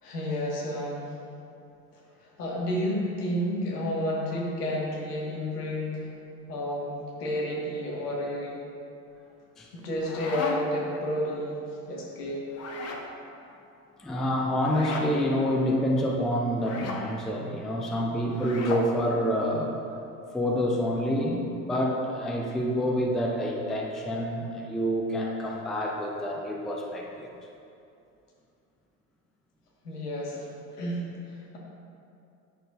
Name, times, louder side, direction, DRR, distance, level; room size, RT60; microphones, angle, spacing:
voice 1, 0.0-1.2 2.2-6.1 6.5-8.6 9.7-12.5 29.8-31.6, equal, 80° left, -3 dB, 1.4 m, -31 dB
sound 1, 9.8-10.9 12.5-13.1 14.6-15.1 16.6-17.0 18.3-18.9, left 3 dB, 35° left, 0.8 m, -35 dB
voice 2, 14.0-19.7 20.3-27.3, equal, ahead, 0 dB, 0.3 m, -27 dB
10.0 x 6.3 x 2.3 m, 2.7 s
figure-of-eight pair, 70°, 47 cm